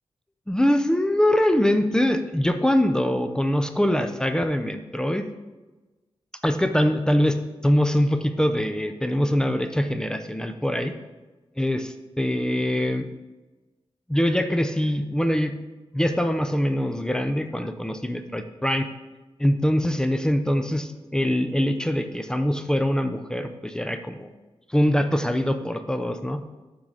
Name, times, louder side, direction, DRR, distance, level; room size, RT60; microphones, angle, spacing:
voice 1, 0.5-5.3 6.4-10.9 11.6-13.1 14.1-15.6 15.9-18.9 19.4-24.3 24.7-26.4, equal, 5° left, 7 dB, 0.4 m, -23 dB
7.1 x 3.8 x 4.9 m, 1.2 s
wide cardioid pair, 125°, 10 cm